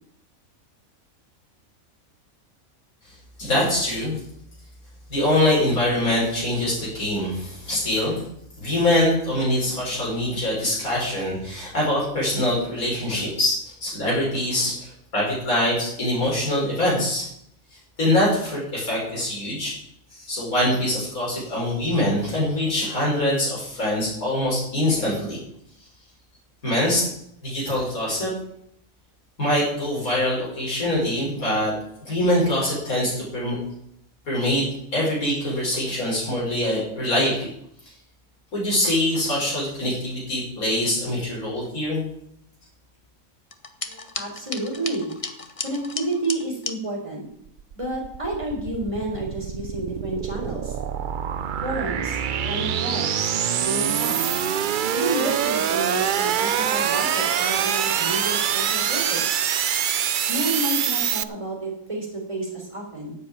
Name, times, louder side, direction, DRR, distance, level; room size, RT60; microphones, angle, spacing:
voice 1, 3.4-4.1 5.1-8.2 8.6-17.2 18.0-19.7 20.1-25.4 26.6-27.1 27.4-28.3 29.4-31.7 32.0-33.6 34.3-34.6 34.9-37.5 38.5-42.0, left 1 dB, 75° left, -6 dB, 6.1 m, -24 dB
sound 1, 43.5-46.8, left 4 dB, 30° left, 0.9 m, -34 dB
voice 2, 43.9-45.1 45.6-47.2 47.7-50.8 51.6-52.2 52.5-53.3 53.6-54.4 54.9-59.4 60.3-63.2, right 1 dB, 20° right, -2 dB, 4.1 m, -30 dB
sound 2, 47.5-61.2, right 9 dB, 65° right, 0.5 m, -25 dB
10.5 x 8.2 x 8.6 m, 0.73 s
omnidirectional pair, 1.5 m